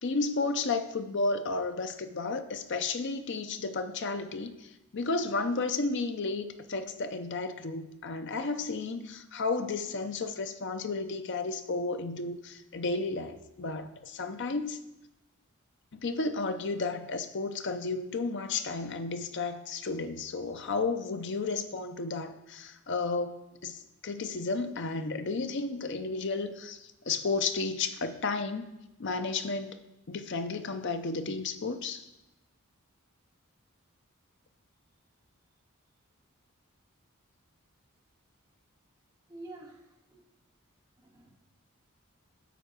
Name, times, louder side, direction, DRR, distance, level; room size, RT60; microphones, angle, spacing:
voice 1, 0.0-14.8 15.9-28.7 29.0-29.8 30.1-32.1, left 3 dB, 55° left, 9 dB, 0.6 m, -33 dB
voice 2, 39.3-40.3 41.0-41.4, right 2 dB, 15° right, -5 dB, 1.9 m, -48 dB
10.0 x 4.5 x 6.7 m, 0.94 s
head